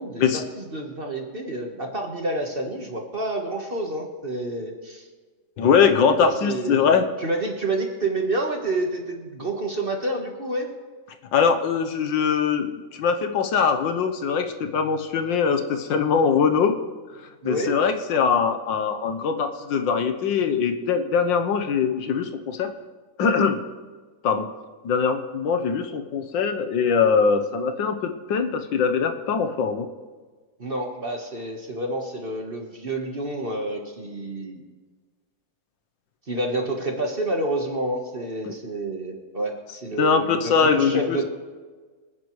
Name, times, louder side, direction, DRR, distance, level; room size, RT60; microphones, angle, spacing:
voice 1, 0.6-5.1 6.2-10.7 17.4-17.8 30.6-34.6 36.3-41.2, right 2 dB, 30° right, 2 dB, 1.4 m, -29 dB
voice 2, 5.6-7.1 11.3-16.8 17.4-22.7 23.2-23.6 24.2-24.5 24.8-29.9 38.5-38.6 40.0-41.2, left 6 dB, 80° left, 7 dB, 1.6 m, -22 dB
26.5 x 9.5 x 3.2 m, 1.4 s
omnidirectional pair, 2.1 m